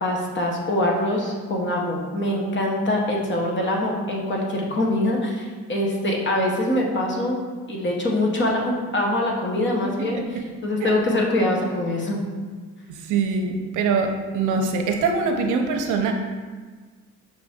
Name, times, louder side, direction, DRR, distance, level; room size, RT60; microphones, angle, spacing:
voice 1, 0.0-7.4 7.7-12.2, left 1 dB, 40° left, -1 dB, 1.0 m, -24 dB
voice 2, 12.9-16.1, right 4 dB, 80° right, 4 dB, 0.6 m, -23 dB
5.2 x 2.6 x 3.5 m, 1.5 s
cardioid pair, 90°, 30 cm